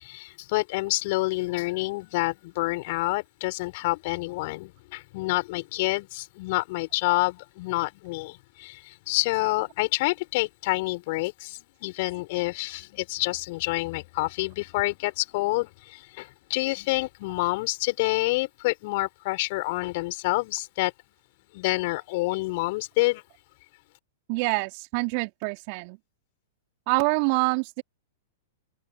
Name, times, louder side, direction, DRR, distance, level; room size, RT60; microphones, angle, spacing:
voice 1, 0.0-20.9 21.5-23.2, left 22 dB, 50° left, 5.5 m, -28 dB
voice 2, 24.3-26.0 26.9-27.8, right 34 dB, 45° right, 3.4 m, -26 dB
figure-of-eight pair, 100°, 0 cm